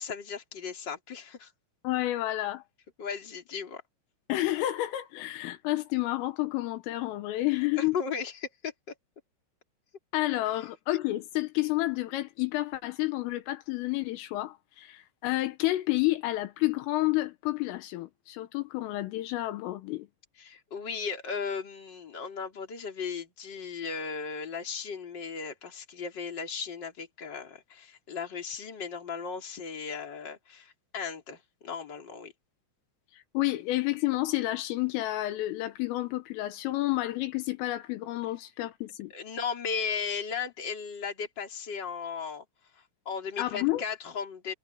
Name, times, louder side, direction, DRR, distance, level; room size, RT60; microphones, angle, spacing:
voice 1, 0.0-1.5 3.0-3.8 7.8-8.7 10.6-10.7 20.4-32.3 39.1-42.4 43.1-44.5, left 6 dB, 25° left, 3.6 m, -36 dB
voice 2, 1.8-2.6 4.3-8.0 10.1-20.1 33.1-39.1 43.4-43.8, left 17 dB, 80° left, 3.7 m, -30 dB
omnidirectional pair, 5.9 m